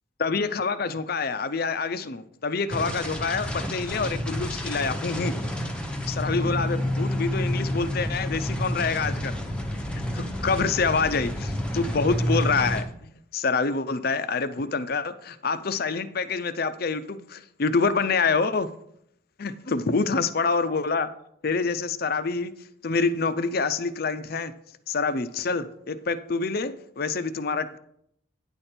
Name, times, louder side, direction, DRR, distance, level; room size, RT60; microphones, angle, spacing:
voice 1, 0.2-5.3 6.1-9.3 10.1-18.7 19.4-21.1 21.4-22.5 22.8-24.5 24.9-27.8, left 4 dB, 50° left, 12 dB, 0.5 m, -26 dB
sound 1, 2.7-12.8, equal, 5° left, 0.8 m, -29 dB
9.8 x 4.4 x 6.6 m, 0.73 s
head